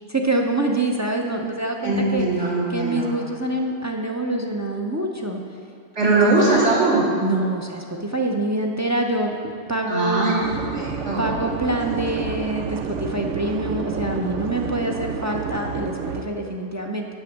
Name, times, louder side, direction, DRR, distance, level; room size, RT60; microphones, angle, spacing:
voice 1, 0.1-2.3 2.7-5.4 6.0-6.4 7.2-10.3 11.2-17.1, right 2 dB, 25° right, 0 dB, 0.4 m, -25 dB
voice 2, 1.8-3.1 5.9-7.1 9.9-10.4 10.7-11.2, right 2 dB, 70° right, -7 dB, 2.9 m, -20 dB
sound 1, 10.4-16.2, right 6 dB, 85° right, 0.9 m, -30 dB
8.0 x 6.2 x 7.1 m, 2.5 s
omnidirectional pair, 1.2 m